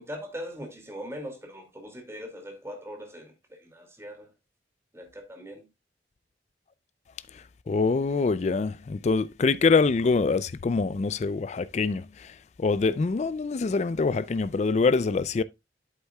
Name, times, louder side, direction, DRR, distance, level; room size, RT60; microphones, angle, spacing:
voice 1, 0.0-4.3 4.9-5.7, equal, 15° right, 2.2 m, -40 dB
voice 2, 7.3-15.4, left 4 dB, 40° left, 0.3 m, -25 dB
8.2 x 8.1 x 2.2 m
head